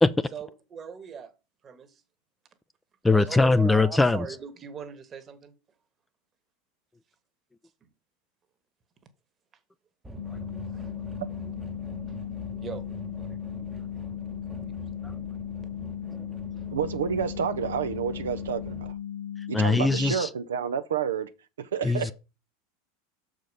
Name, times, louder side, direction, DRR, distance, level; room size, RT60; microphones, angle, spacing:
voice 1, 0.3-1.3 1.6-2.0 3.1-5.5 7.8-7.9 10.2-11.2 12.1-12.2 12.6-12.9 13.1-13.5 14.7-15.0 16.6-16.7 19.8-19.9, right 6 dB, 30° right, 1.4 m, -41 dB
voice 2, 3.0-4.2 15.0-15.1 19.5-20.3 21.8-22.1, left 3 dB, 10° left, 0.5 m, -21 dB
sound 1, 10.0-18.9, right 3 dB, 15° right, 1.0 m, -44 dB
sound 2, 10.2-20.2, left 9 dB, 75° left, 0.5 m, -37 dB
voice 3, 16.7-18.9 19.5-21.3 21.6-22.1, right 7 dB, 75° right, 0.6 m, -29 dB
6.3 x 5.0 x 5.4 m
hypercardioid pair, 85°, 0 cm